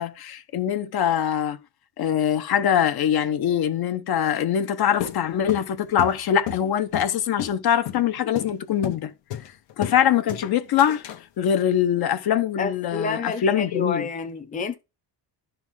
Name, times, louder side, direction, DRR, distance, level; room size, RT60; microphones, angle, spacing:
voice 1, 0.0-1.6 2.0-9.1 9.8-11.0 11.4-14.1, left 9 dB, 60° left, 0.9 m, -23 dB
sound 1, 5.0-7.1 7.4-7.6 7.9-8.0 8.4-8.5 8.8-9.0 9.3-10.0 10.3-11.2, left 11 dB, 75° left, 1.3 m, -31 dB
voice 2, 12.6-14.7, left 4 dB, 20° left, 0.7 m, -29 dB
12.0 x 4.6 x 3.7 m
cardioid pair, 160°, 43 cm